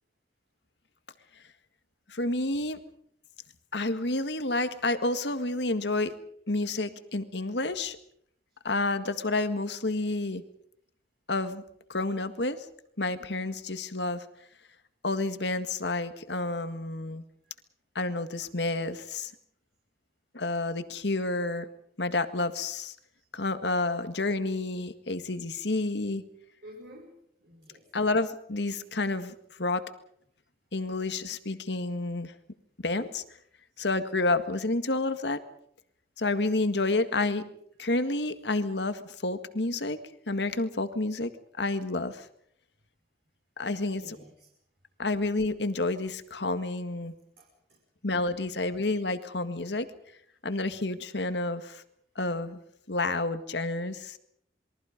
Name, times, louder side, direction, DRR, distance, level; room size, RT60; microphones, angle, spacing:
voice 1, 2.1-2.8 3.7-6.2 6.5-8.0 8.6-10.4 11.3-11.6 11.9-12.7 13.0-14.3 15.0-17.2 18.0-19.3 20.3-21.7 22.0-23.0 23.3-26.2 27.9-29.8 30.7-32.3 32.8-33.2 33.8-35.4 36.2-37.4 37.8-40.0 40.3-41.3 41.6-42.3 43.6-44.2 45.0-47.1 48.0-49.9 50.4-51.8 52.2-52.6 52.9-54.2, left 2 dB, 65° left, 10 dB, 1.9 m, -29 dB
voice 2, 26.6-27.8 43.9-44.3 47.4-47.8, equal, 60° right, -2 dB, 5.6 m, -50 dB
27.5 x 22.5 x 5.2 m, 0.69 s
head